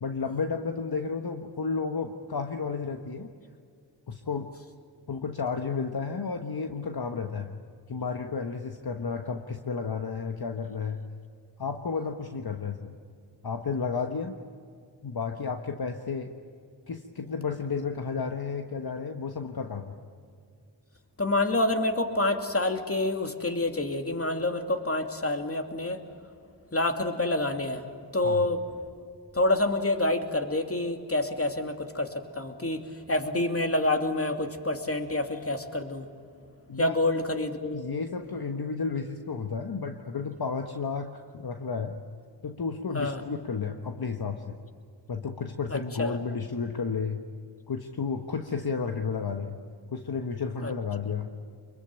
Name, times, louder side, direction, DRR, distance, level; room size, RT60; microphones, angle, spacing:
voice 1, 0.0-3.3 4.1-4.5 5.1-7.5 7.9-11.0 11.6-13.0 13.4-14.4 15.0-16.3 16.9-20.0 28.2-28.5 36.7-37.0 37.7-42.0 42.4-44.6 45.1-47.2 47.7-49.6 49.9-51.3, left 5 dB, 55° left, 5 dB, 1.4 m, -32 dB
voice 2, 21.2-26.0 26.7-27.8 28.1-28.6 29.3-32.8 33.1-36.1 36.8-37.8 42.9-43.2 45.7-46.2 50.6-50.7, left 2 dB, 30° left, 5 dB, 2.7 m, -27 dB
25.0 x 22.5 x 9.1 m, 2.3 s
cardioid pair, 45°, 44 cm